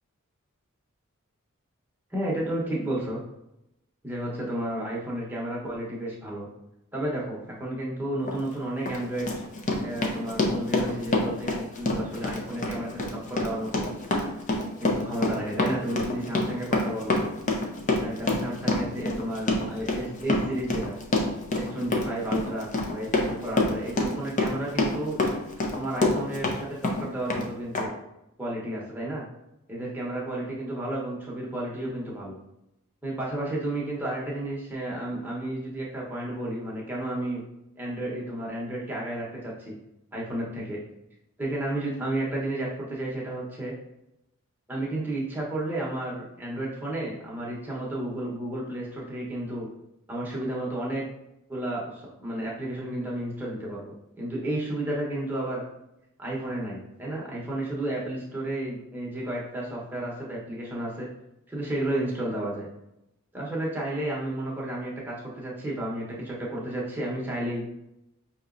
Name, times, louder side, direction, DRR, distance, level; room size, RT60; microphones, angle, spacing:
voice 1, 2.1-3.2 4.0-6.5 6.9-9.4 9.8-13.9 14.8-17.2 18.0-21.0 21.5-25.2 25.7-27.9 28.4-29.3 29.7-32.4 33.0-37.4 37.8-39.7 40.1-40.8 41.4-43.7 44.7-49.7 50.1-51.0 51.5-55.6 56.2-61.1 61.5-62.7 63.3-67.6, right 1 dB, 10° right, -5 dB, 0.9 m, -32 dB
Run, 8.2-8.4 8.9-26.6 26.8-27.5 27.7-27.8, left 2 dB, 35° left, 0.5 m, -27 dB
5.5 x 2.9 x 2.5 m, 0.87 s
head